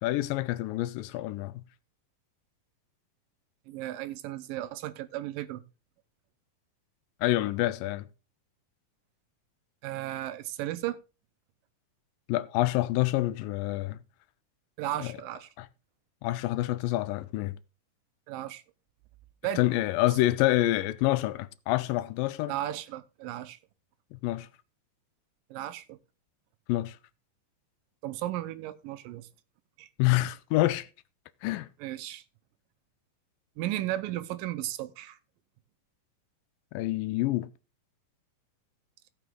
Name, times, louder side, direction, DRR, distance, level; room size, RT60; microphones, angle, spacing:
voice 1, 0.0-1.6 7.2-8.1 12.3-14.0 15.0-15.1 15.6-15.7 16.2-17.6 19.6-22.5 24.1-24.5 26.7-27.0 30.0-30.9 31.4-31.7 36.7-37.5, left 16 dB, 85° left, 2.3 m, -27 dB
voice 2, 3.7-5.6 9.8-11.0 14.8-15.5 18.3-18.6 19.4-19.6 22.5-23.6 25.5-26.0 28.0-29.3 29.8-29.9 31.8-32.2 33.6-35.2, right 14 dB, 90° right, 2.5 m, -35 dB
16.5 x 6.0 x 3.7 m
omnidirectional pair, 3.9 m